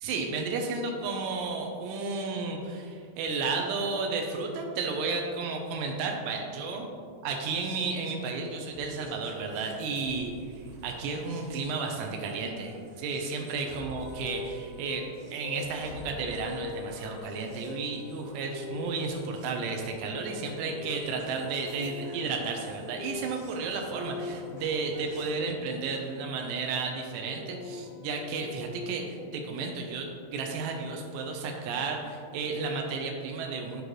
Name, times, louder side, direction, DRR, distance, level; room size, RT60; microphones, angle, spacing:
voice 1, 0.0-6.9 7.2-33.8, right 4 dB, 85° right, 2 dB, 2.9 m, -33 dB
sound 1, 8.5-25.4, right 1 dB, 70° right, 2.8 m, -51 dB
sound 2, 14.0-25.9 27.0-29.3, left 4 dB, 85° left, 2.6 m, -44 dB
12.5 x 4.8 x 3.1 m, 2.3 s
omnidirectional pair, 4.9 m